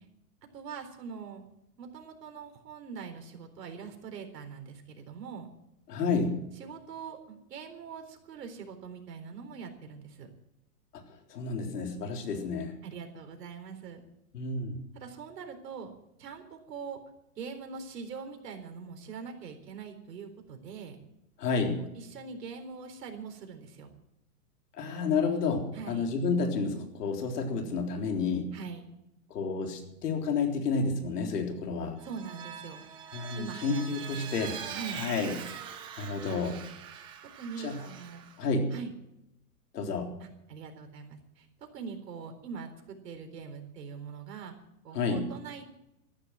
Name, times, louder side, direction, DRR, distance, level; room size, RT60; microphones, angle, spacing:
voice 1, 0.5-1.4 1.8-5.5 6.5-10.3 12.8-14.0 14.9-15.9 16.2-17.0 17.4-21.0 21.8-23.9 25.7-26.1 28.5-28.8 32.0-32.8 33.3-34.1 34.4-35.0 37.4-38.2 38.7-38.9 40.2-44.5 44.8-45.8, right 6 dB, 85° right, 5 dB, 4.1 m, -43 dB
voice 2, 5.9-6.4 11.3-12.7 14.3-14.8 21.4-21.8 24.8-28.5 29.3-32.0 33.1-34.6 34.9-35.3 36.0-36.6 37.6-37.8 38.4-38.7 39.7-40.1 44.9-45.2, left 4 dB, 75° left, 4 dB, 3.9 m, -30 dB
Vehicle, 32.0-38.4, right 8 dB, 10° right, 0.7 m, -43 dB
14.5 x 11.0 x 7.8 m, 0.85 s
supercardioid pair, 170°, 47 cm